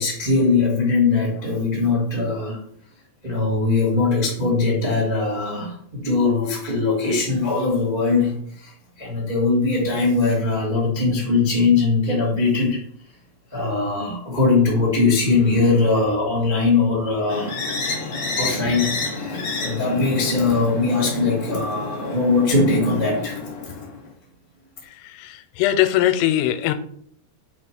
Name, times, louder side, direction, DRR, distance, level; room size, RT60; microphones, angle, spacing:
voice 1, 0.0-2.6 3.2-12.8 13.5-17.5 18.3-23.4 23.6-23.7, left 3 dB, 85° right, -4 dB, 0.4 m, -21 dB
sound 1, 17.3-24.1, left 3 dB, 45° left, 2.5 m, -30 dB
voice 2, 24.8-26.7, left 13 dB, 90° left, 9 dB, 3.2 m, -21 dB
8.4 x 4.8 x 4.6 m, 0.62 s
omnidirectional pair, 5.7 m